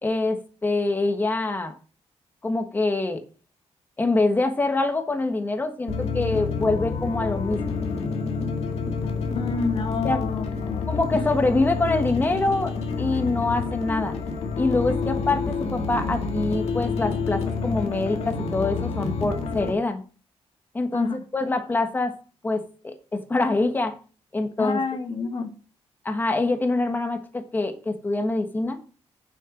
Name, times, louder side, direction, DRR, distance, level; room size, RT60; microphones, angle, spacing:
voice 1, 0.0-1.7 2.4-3.2 4.0-7.8 10.0-10.2 10.9-14.1 14.6-20.0 20.7-22.1 22.4-23.9 24.3-24.8 26.0-28.8, left 2 dB, 15° left, 7 dB, 1.3 m, -25 dB
sound 1, 5.9-19.7, left 4 dB, 75° left, 2.2 m, -28 dB
voice 2, 9.3-11.2 20.9-21.2 24.6-25.5, left 4 dB, 50° left, 7 dB, 1.1 m, -29 dB
9.1 x 7.6 x 5.0 m, 0.38 s
wide cardioid pair, 155°, 11 cm